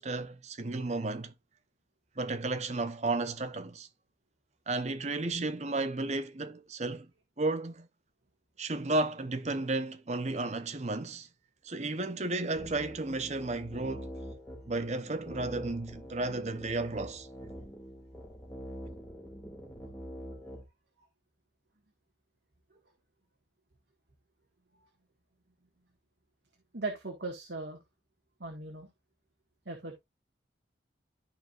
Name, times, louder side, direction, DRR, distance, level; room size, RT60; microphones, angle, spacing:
voice 1, 0.0-1.3 2.2-3.9 4.7-7.1 7.4-7.9 8.6-11.3 11.6-14.1 14.7-17.3, right 2 dB, 35° right, 0.8 m, -33 dB
sound 1, 12.5-20.6, equal, 10° left, 2.2 m, -45 dB
voice 2, 26.7-27.8 28.4-28.9 29.6-30.0, right 3 dB, 65° right, 1.7 m, -39 dB
13.0 x 4.7 x 2.5 m
head